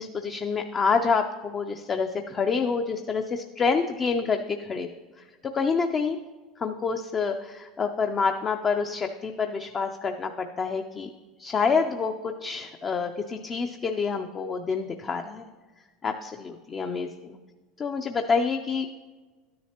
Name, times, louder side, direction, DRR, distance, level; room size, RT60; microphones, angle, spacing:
voice 1, 0.0-4.9 5.2-6.2 6.6-11.1 11.4-15.5 16.0-17.4 17.8-18.9, left 5 dB, 25° left, 5 dB, 0.4 m, -27 dB
12.5 x 10.5 x 2.9 m, 1.3 s
supercardioid pair, 150°, 0 cm